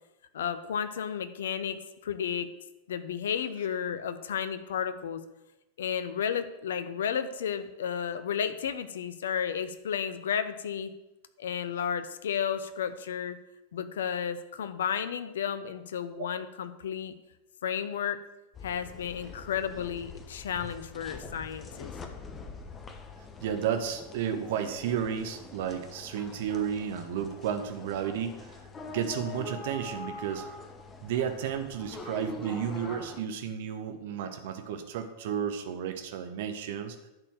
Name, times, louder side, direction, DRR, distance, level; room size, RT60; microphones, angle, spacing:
voice 1, 0.3-2.5 2.9-5.2 5.8-10.9 11.4-13.4 13.7-17.1 17.6-18.2 18.6-21.9, left 8 dB, 60° left, 12 dB, 0.7 m, -32 dB
sound 1, 18.5-33.2, left 3 dB, 20° left, 1.1 m, -44 dB
voice 2, 23.4-28.5 28.9-30.4 31.0-37.1, right 8 dB, 55° right, 6 dB, 1.1 m, -32 dB
11.0 x 4.4 x 7.3 m, 0.95 s
figure-of-eight pair, 90°, 0 cm